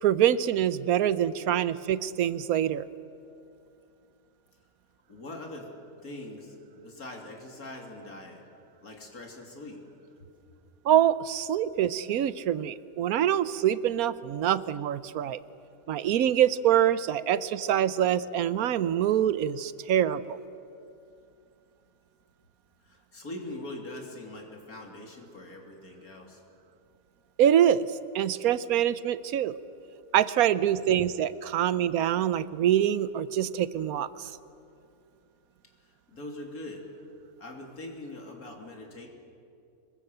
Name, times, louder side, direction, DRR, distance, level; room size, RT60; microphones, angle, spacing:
voice 1, 0.0-2.9 10.8-15.4 15.9-20.4 27.4-27.9 28.1-29.6 30.1-34.3, right 10 dB, 75° right, 16 dB, 1.2 m, -25 dB
voice 2, 5.1-5.7 6.0-8.4 8.8-9.8 22.8-26.4 35.6-36.9 37.4-39.1, left 1 dB, 75° left, 1 dB, 3.5 m, -42 dB
25.5 x 21.5 x 7.9 m, 2.6 s
omnidirectional pair, 1.6 m